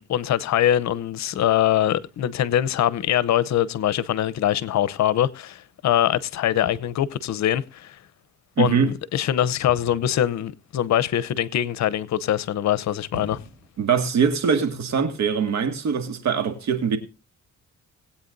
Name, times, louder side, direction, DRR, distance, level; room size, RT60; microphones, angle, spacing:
voice 1, 0.0-8.0 8.6-13.4, left 11 dB, 65° left, 0.8 m, -23 dB
sound 1, 6.7-7.0 9.7-10.2 11.1-11.2 12.6-12.7 13.0-13.7, equal, 5° right, 5.5 m, -41 dB
voice 2, 8.6-8.9 13.8-17.0, right 6 dB, 65° right, 2.0 m, -22 dB
20.0 x 8.6 x 2.6 m
cardioid pair, 90°, 30 cm